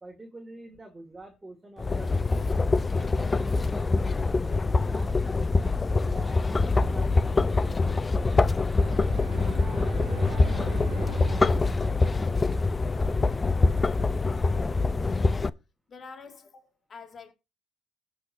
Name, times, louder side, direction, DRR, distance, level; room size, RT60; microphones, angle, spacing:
voice 1, 0.0-2.5 3.0-8.9 9.3-14.0, right 2 dB, 20° right, 2.2 m, -47 dB
sound 1, 1.8-15.5, left 3 dB, 25° left, 0.5 m, -25 dB
Bowed string instrument, 8.7-13.1, right 2 dB, 85° right, 1.7 m, -38 dB
voice 2, 15.1-15.5 15.9-17.3, left 5 dB, 40° left, 2.2 m, -47 dB
17.5 x 6.1 x 2.7 m
supercardioid pair, 85°, 0 cm